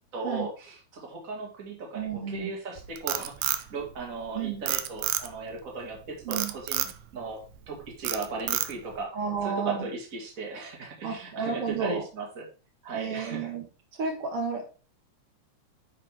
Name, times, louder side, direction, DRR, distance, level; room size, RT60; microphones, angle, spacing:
voice 1, 0.1-9.1 9.4-12.5 12.8-13.5, right 3 dB, 30° right, -1 dB, 2.3 m, -37 dB
voice 2, 1.9-2.5 4.3-4.6 6.3-6.5 9.1-9.9 11.0-12.0 12.9-13.6 14.0-14.7, right 5 dB, 55° right, 3 dB, 2.3 m, -31 dB
Frog, 2.8-4.3 4.7-5.5 6.3-7.0 7.4-7.7 8.0-9.0, right 12 dB, 85° right, 2.0 m, -29 dB
9.2 x 5.5 x 3.5 m, 0.35 s
omnidirectional pair, 3.4 m